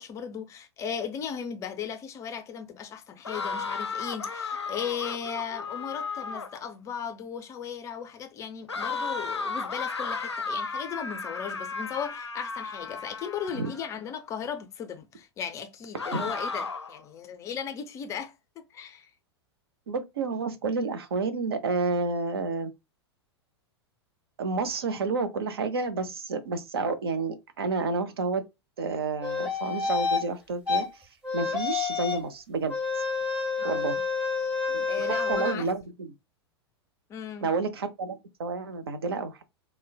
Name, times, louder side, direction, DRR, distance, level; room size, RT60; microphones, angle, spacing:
voice 1, 0.0-18.3 18.7-19.1 33.6-34.0 34.9-35.7 37.1-37.5, left 7 dB, 20° left, 0.4 m, -36 dB
sound 1, 3.2-6.6 8.7-14.0 15.9-17.0, left 4 dB, 80° left, 0.4 m, -34 dB
voice 2, 19.9-22.7 24.4-28.4 28.8-31.0 31.3-32.8 33.6-33.9 34.7-36.1 37.4-39.4, right 4 dB, 65° right, 0.5 m, -30 dB
sound 2, 29.2-30.2 30.7-30.8 31.2-32.3 32.7-35.5, left 4 dB, 10° right, 1.2 m, -28 dB
3.7 x 2.1 x 2.2 m
figure-of-eight pair, 95°, 14 cm